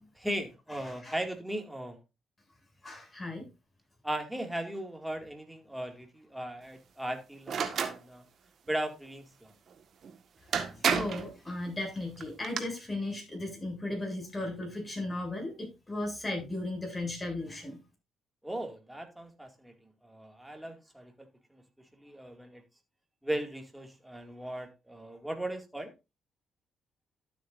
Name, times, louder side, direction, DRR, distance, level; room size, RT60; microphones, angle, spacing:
voice 1, 0.2-2.0 4.0-8.2 8.7-9.6 18.4-19.7 20.0-21.6 22.0-22.6 23.2-25.9, right 1 dB, 5° right, 2.3 m, -37 dB
voice 2, 0.8-1.2 2.8-3.5 10.7-17.8, left 2 dB, 20° left, 7.0 m, -36 dB
sound 1, 7.5-8.0 10.0-10.1 10.5-11.3 12.2-12.6, right 7 dB, 60° right, 1.6 m, -29 dB
12.5 x 8.2 x 2.6 m
cardioid pair, 90°, 0 cm